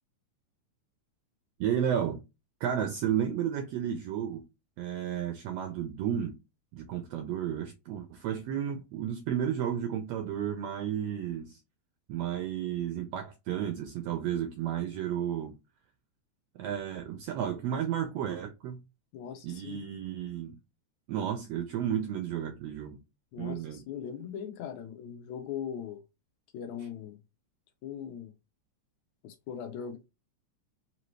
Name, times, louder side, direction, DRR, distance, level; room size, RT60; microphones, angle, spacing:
voice 1, 1.6-2.2 2.6-4.5 4.8-6.4 6.7-11.6 12.1-15.5 16.6-18.8 19.4-20.6 21.1-23.0 23.4-23.8, right 9 dB, 80° right, 1.4 m, -32 dB
voice 2, 19.1-19.8 23.3-26.0 26.5-27.2 27.8-28.3 29.2-30.0, left 8 dB, 75° left, 1.9 m, -40 dB
5.1 x 2.7 x 3.1 m
omnidirectional pair, 3.5 m